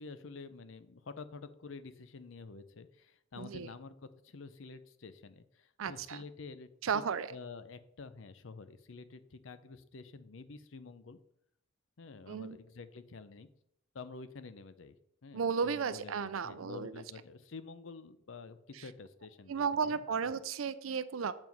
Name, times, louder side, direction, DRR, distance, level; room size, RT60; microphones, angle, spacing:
voice 1, 0.0-4.0 4.2-7.0 7.3-11.2 12.0-13.5 13.9-15.0 15.2-20.0, left 4 dB, 70° left, 13 dB, 0.6 m, -49 dB
voice 2, 3.4-3.7 5.8-6.2 6.8-7.3 12.3-12.6 15.3-17.0 18.8-18.9 19.5-21.3, right 6 dB, 85° right, 15 dB, 0.5 m, -34 dB
7.6 x 4.9 x 5.3 m, 0.74 s
head